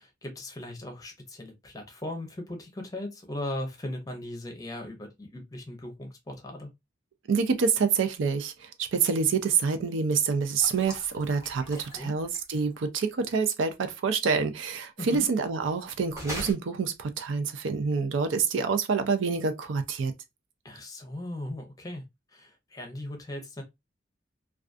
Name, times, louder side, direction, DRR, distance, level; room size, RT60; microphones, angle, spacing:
voice 1, 0.0-6.7 11.8-12.1 15.0-15.3 20.6-22.0 22.3-23.6, left 1 dB, 20° left, 0.6 m, -38 dB
voice 2, 7.3-20.1, right 5 dB, 85° right, 0.4 m, -27 dB
sound 1, 10.6-12.8 16.1-16.5, equal, 15° right, 0.7 m, -40 dB
2.4 x 2.3 x 2.4 m
head